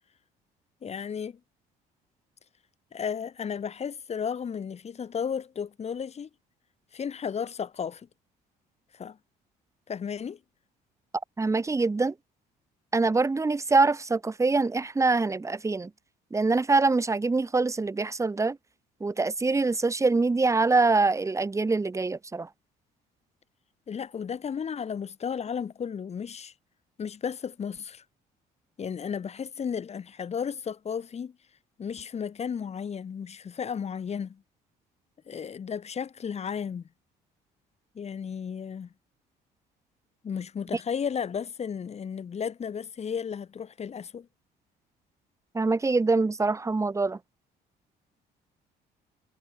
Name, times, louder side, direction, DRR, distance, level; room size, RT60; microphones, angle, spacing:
voice 1, 0.8-1.4 2.9-6.3 6.9-8.1 8.9-9.2 9.9-10.4 23.9-26.5 27.0-28.0 28.8-31.3 31.8-34.4 35.3-36.8 38.0-38.9 40.2-44.3, left 7 dB, 40° left, 5.1 m, -34 dB
voice 2, 11.4-12.1 12.9-15.9 16.3-18.6 19.0-22.5 45.5-47.2, right 3 dB, 15° right, 2.4 m, -24 dB
cardioid pair, 110°, 17 cm